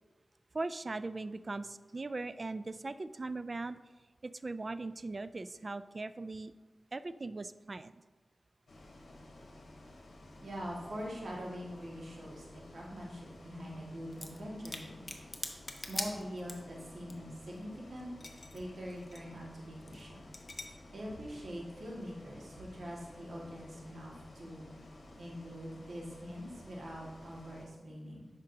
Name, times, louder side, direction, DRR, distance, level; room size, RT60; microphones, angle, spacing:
voice 1, 0.5-3.8 4.2-6.5 6.9-7.9, right 3 dB, 45° right, 13 dB, 0.3 m, -39 dB
Bus, 8.7-27.7, left 1 dB, 75° left, 1.0 m, -54 dB
voice 2, 10.4-15.1 15.8-18.1 18.5-20.2 20.9-24.7 25.2-28.3, equal, 75° right, -4 dB, 1.9 m, -44 dB
sound 1, 14.1-14.4 14.7-16.8 17.1-17.2 17.4-18.6 18.9-19.2 19.8-20.0 20.3-20.6, left 2 dB, 35° left, 0.8 m, -41 dB
10.0 x 5.1 x 2.8 m, 1.2 s
wide cardioid pair, 65°, 0 cm